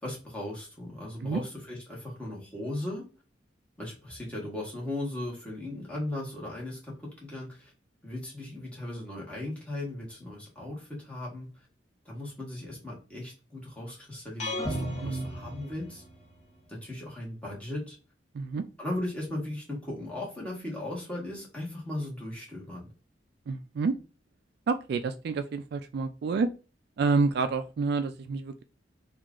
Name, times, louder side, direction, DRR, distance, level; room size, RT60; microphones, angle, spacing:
voice 1, 0.0-3.1 3.8-7.7 8.0-11.5 12.0-16.0 16.7-18.0 18.8-22.9, left 1 dB, 5° left, -4 dB, 1.4 m, -37 dB
sound 1, 14.4-16.4, equal, 40° left, 1.1 m, -34 dB
voice 2, 23.5-23.9 24.7-26.5 27.0-28.6, right 4 dB, 60° right, 9 dB, 0.3 m, -28 dB
3.0 x 2.4 x 3.6 m, 0.34 s
head